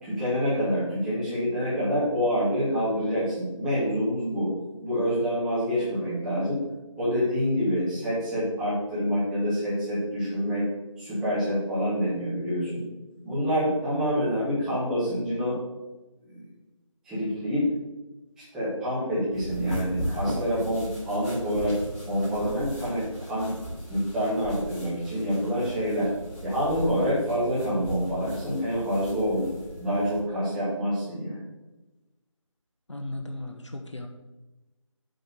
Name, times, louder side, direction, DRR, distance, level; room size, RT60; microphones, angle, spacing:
voice 1, 0.0-4.5 4.8-6.6 7.0-10.7 11.0-12.8 13.2-15.6 17.0-17.7 18.4-21.8 22.1-23.5 23.9-26.1 26.4-29.5 29.8-31.4, equal, 5° right, -13 dB, 2.1 m, -27 dB
sound 1, 19.3-30.2, right 1 dB, 15° left, 2.6 m, -37 dB
voice 2, 32.9-34.1, left 1 dB, 60° left, 5 dB, 1.0 m, -36 dB
7.9 x 4.6 x 6.9 m, 1.1 s
figure-of-eight pair, 165°, 17 cm